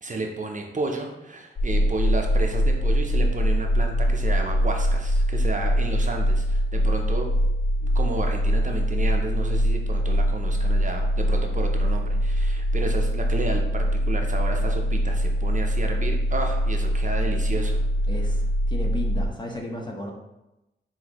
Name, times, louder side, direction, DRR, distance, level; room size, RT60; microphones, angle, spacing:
voice 1, 0.0-7.3 7.8-17.8, right 2 dB, 40° right, 2 dB, 0.5 m, -32 dB
sound 1, 1.6-19.3, equal, 55° left, 0.5 m, -23 dB
voice 2, 18.7-20.1, left 1 dB, 20° left, 0 dB, 0.8 m, -33 dB
5.7 x 2.7 x 2.9 m, 0.96 s
wide cardioid pair, 80°, 20 cm